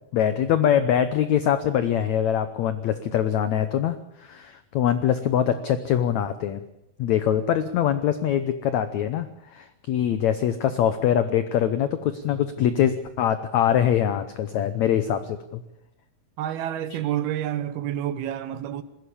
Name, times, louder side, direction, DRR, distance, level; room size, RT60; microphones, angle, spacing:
voice 1, 0.1-6.6 7.0-15.6, left 10 dB, 90° left, 1.5 m, -23 dB
voice 2, 16.4-18.8, right 11 dB, 80° right, 3.0 m, -28 dB
20.5 x 16.0 x 8.5 m
omnidirectional pair, 4.5 m